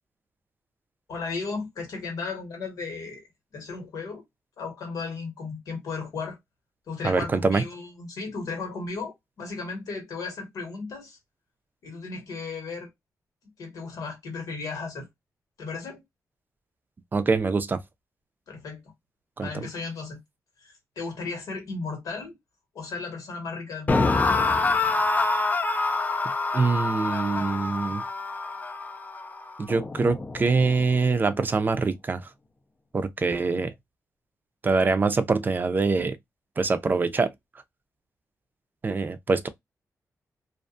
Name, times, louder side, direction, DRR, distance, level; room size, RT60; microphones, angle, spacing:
voice 1, 1.1-3.2 3.5-4.2 4.6-6.4 6.9-11.2 11.8-12.9 13.6-15.1 15.6-16.0 18.5-18.8 19.4-20.2 20.6-22.4 22.7-24.1, left 4 dB, 85° left, 1.4 m, -35 dB
voice 2, 7.0-7.6 17.1-17.8 19.4-19.5 26.5-28.0 29.6-32.3 32.9-33.7 34.6-36.2 36.6-37.3 38.8-39.5, right 4 dB, 35° right, 0.4 m, -24 dB
sound 1, 23.9-31.0, left 3 dB, 30° left, 0.4 m, -26 dB
2.5 x 2.2 x 2.4 m
cardioid pair, 90°, 6 cm